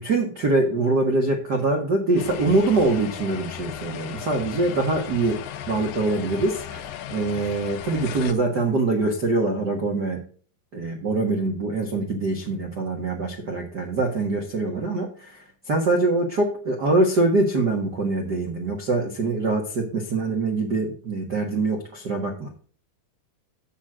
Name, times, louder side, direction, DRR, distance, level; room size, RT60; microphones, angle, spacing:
voice 1, 0.0-10.2 10.7-22.5, right 2 dB, 75° right, 1 dB, 0.9 m, -24 dB
sound 1, 2.2-8.3, left 10 dB, 75° left, 2.4 m, -36 dB
9.5 x 7.8 x 3.6 m, 0.42 s
omnidirectional pair, 4.5 m